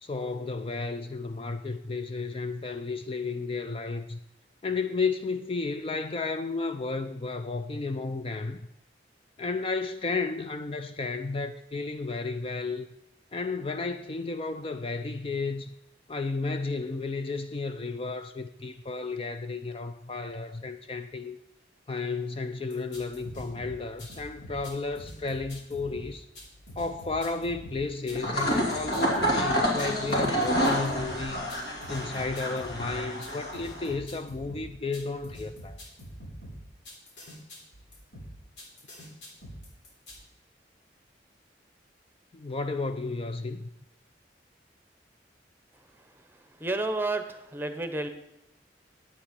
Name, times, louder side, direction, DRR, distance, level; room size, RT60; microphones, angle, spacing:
voice 1, 0.0-4.2 4.6-8.7 9.4-12.9 13.3-15.7 16.1-21.4 21.9-26.3 26.8-31.5 31.9-35.8 42.3-43.7, left 3 dB, 30° left, 0.4 m, -33 dB
sound 1, 22.7-40.2, equal, 90° left, 3.7 m, -45 dB
sound 2, 28.1-33.9, equal, 65° left, 2.6 m, -28 dB
voice 2, 46.6-48.1, right 2 dB, 10° right, 0.9 m, -30 dB
10.0 x 8.5 x 5.2 m
head